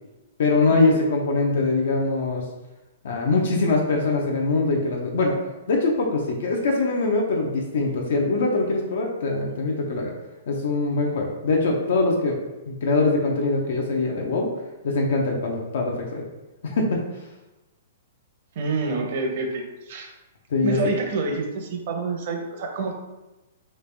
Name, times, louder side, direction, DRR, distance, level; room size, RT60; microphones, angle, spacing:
voice 1, 0.4-2.4 3.0-5.4 5.7-10.1 10.5-12.4 12.7-14.5 14.8-16.2 16.6-17.0 20.5-20.8, left 3 dB, 70° left, 0 dB, 0.5 m, -23 dB
voice 2, 18.5-20.1 20.6-22.9, right 3 dB, 50° right, 2 dB, 0.7 m, -27 dB
3.2 x 2.4 x 3.3 m, 1.1 s
hypercardioid pair, 150°, 0 cm